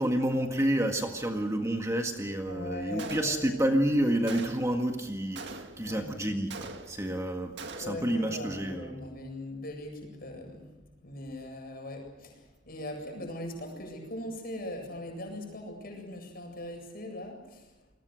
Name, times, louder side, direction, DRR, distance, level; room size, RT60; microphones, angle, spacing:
voice 1, 0.0-9.0, right 1 dB, 15° right, 3 dB, 1.7 m, -29 dB
voice 2, 2.5-3.5 5.8-6.1 7.8-17.7, left 1 dB, 50° left, 3 dB, 8.0 m, -40 dB
Gunshot gunfire, 3.0-3.7 4.3-4.8 5.3-6.0 6.5-7.2 7.6-8.1, right 3 dB, 65° right, 2.0 m, -42 dB
29.0 x 22.0 x 6.4 m, 0.99 s
head